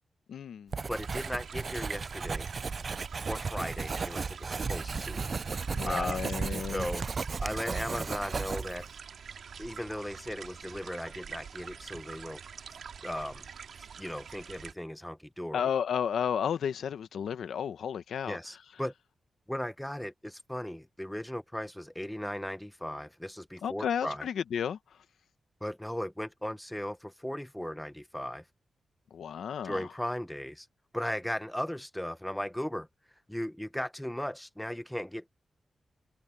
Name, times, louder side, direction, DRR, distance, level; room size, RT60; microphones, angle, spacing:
voice 1, 0.3-0.7 5.7-6.9 15.5-18.4 23.6-24.8 29.1-29.9, left 8 dB, 85° left, 1.1 m, -32 dB
Writing, 0.7-8.9, right 4 dB, 45° right, 0.4 m, -35 dB
voice 2, 0.9-2.5 3.3-5.3 5.8-6.2 6.7-7.1 7.4-8.9 9.6-12.4 13.0-13.4 14.0-15.7 18.3-18.9 19.5-24.3 25.6-28.4 29.6-30.7 30.9-32.9 33.3-35.2, equal, 5° left, 1.0 m, -37 dB
sound 1, 0.9-14.7, right 7 dB, 75° right, 3.8 m, -45 dB
cardioid pair, 85°, 0 cm